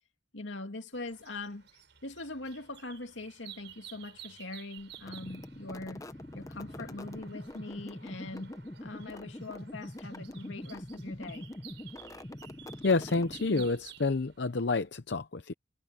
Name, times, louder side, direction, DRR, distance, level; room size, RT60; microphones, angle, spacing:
voice 1, 0.3-1.7 2.0-6.1 6.3-11.5, left 2 dB, 85° left, 2.4 m, -42 dB
sound 1, 0.9-14.9, right 9 dB, 70° right, 5.7 m, -54 dB
sound 2, 4.9-13.9, left 1 dB, 20° left, 0.8 m, -44 dB
voice 2, 12.8-15.5, left 3 dB, 65° left, 0.7 m, -29 dB
head